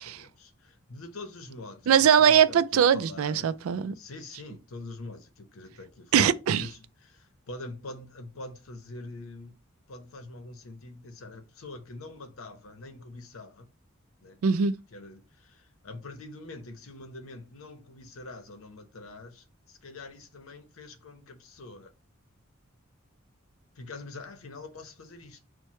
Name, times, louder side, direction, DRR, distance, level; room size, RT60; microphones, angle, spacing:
voice 1, 0.0-1.9 2.3-3.5 4.0-9.5 9.9-13.7 14.2-14.4 14.9-21.9 23.8-25.4, left 2 dB, 85° left, 0.8 m, -44 dB
voice 2, 1.9-3.9 6.1-6.7 14.4-14.7, right 8 dB, 85° right, 0.3 m, -21 dB
4.6 x 2.2 x 4.3 m
head